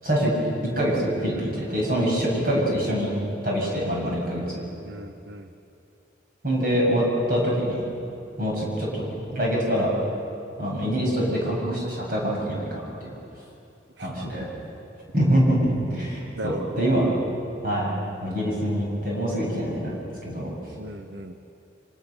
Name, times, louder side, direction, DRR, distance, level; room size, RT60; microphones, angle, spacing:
voice 1, 0.8-3.1 3.4-4.4 6.4-7.8 8.4-9.0 9.3-9.9 10.6-13.1 14.0-14.4 15.1-17.1 17.6-17.9 18.2-20.5, equal, 55° right, -3 dB, 8.0 m, -25 dB
voice 2, 4.9-5.5 14.0-14.1 14.4-14.5 16.3-16.9 20.8-21.4, right 1 dB, 70° right, 7 dB, 0.9 m, -36 dB
26.0 x 25.5 x 6.7 m, 2.7 s
head